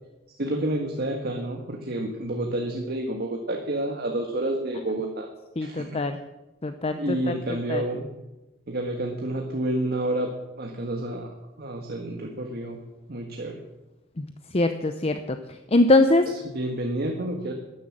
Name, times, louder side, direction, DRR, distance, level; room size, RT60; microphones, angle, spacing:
voice 1, 0.4-5.3 5.6-6.0 7.0-8.1 8.7-10.3 10.6-11.3 11.6-12.8 13.1-13.6 16.3-17.5, right 1 dB, 50° right, 3 dB, 1.5 m, -29 dB
voice 2, 5.6-6.2 6.6-7.0 7.7-7.8 14.5-15.4 15.7-16.3, left 2 dB, 30° left, 8 dB, 0.7 m, -21 dB
12.5 x 10.5 x 7.5 m, 1.0 s
head